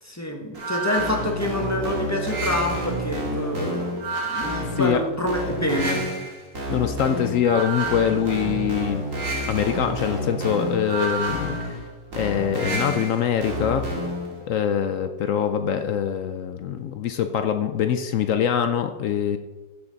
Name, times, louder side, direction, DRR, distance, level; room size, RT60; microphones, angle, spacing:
voice 1, 0.0-6.1, left 1 dB, 10° left, 1 dB, 1.1 m, -27 dB
sound 1, 0.5-14.3, right 1 dB, 50° right, 2.6 m, -29 dB
voice 2, 6.7-9.0 9.5-11.9 12.2-13.9 14.5-19.4, left 8 dB, 70° left, 8 dB, 0.8 m, -24 dB
15.0 x 5.8 x 4.0 m, 1.2 s
omnidirectional pair, 1.8 m